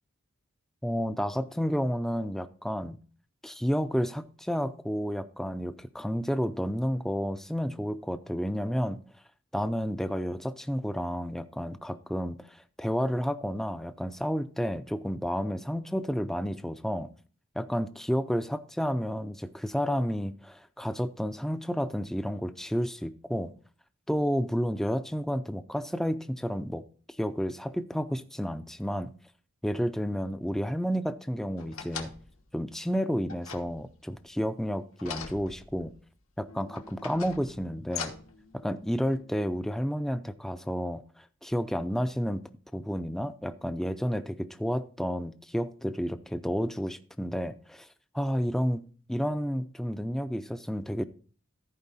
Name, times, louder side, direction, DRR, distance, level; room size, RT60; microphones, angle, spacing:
voice 1, 0.8-3.0 3.4-9.0 9.5-17.1 17.6-23.5 24.1-26.8 27.2-29.1 29.6-32.1 32.5-35.9 36.4-38.1 38.5-42.4 42.7-47.9 48.1-48.8 49.1-51.0, equal, ahead, 0.4 m, -31 dB
sound 1, 31.6-32.4 33.3-34.2 35.0-36.0 36.7-38.4 39.1-39.2, left 6 dB, 80° left, 1.3 m, -41 dB
sound 2, 36.5-39.6, left 2 dB, 65° left, 0.9 m, -55 dB
14.0 x 4.8 x 4.1 m
head